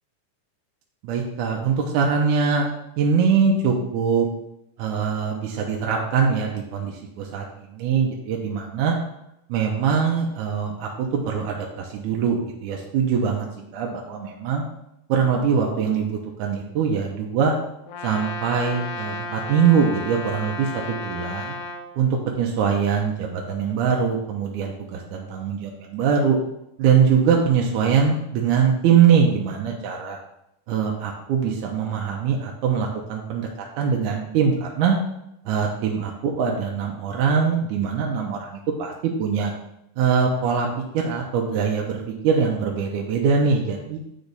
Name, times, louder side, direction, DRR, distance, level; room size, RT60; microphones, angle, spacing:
voice 1, 1.0-2.7 3.0-4.3 4.8-9.0 9.5-13.5 13.7-14.6 15.1-17.6 18.0-21.6 22.0-22.1 22.4-26.4 26.8-30.2 30.7-35.0 35.5-38.9 39.2-39.5 40.0-40.7 40.9-44.0, right 6 dB, 75° right, -1 dB, 2.0 m, -22 dB
Brass instrument, 17.9-21.9, left 3 dB, 75° left, 2.3 m, -33 dB
9.0 x 3.3 x 4.0 m, 0.82 s
omnidirectional pair, 3.9 m